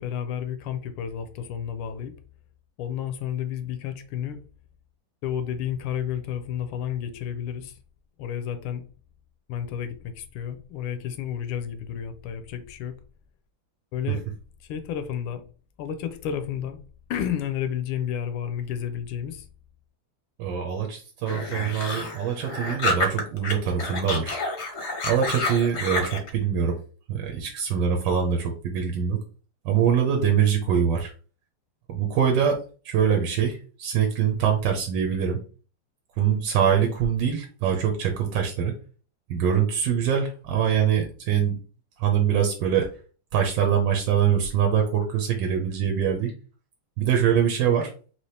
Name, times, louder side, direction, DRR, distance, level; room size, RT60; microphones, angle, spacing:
voice 1, 0.0-2.1 2.8-4.4 5.2-7.8 8.2-8.8 9.5-12.9 13.9-14.2 14.6-15.4 15.8-16.8 17.1-19.5, left 9 dB, 85° left, 1.5 m, -31 dB
voice 2, 20.4-24.3 25.0-26.8 27.1-29.2 29.6-31.1 31.9-32.6 32.8-35.4 36.2-38.7 39.3-41.6 42.0-42.9 43.3-46.3 47.0-47.9, right 8 dB, 70° right, 1.2 m, -23 dB
sound 1, 21.3-23.5 23.8-26.3, left 2 dB, 55° left, 0.7 m, -29 dB
4.2 x 2.9 x 3.2 m
omnidirectional pair, 2.4 m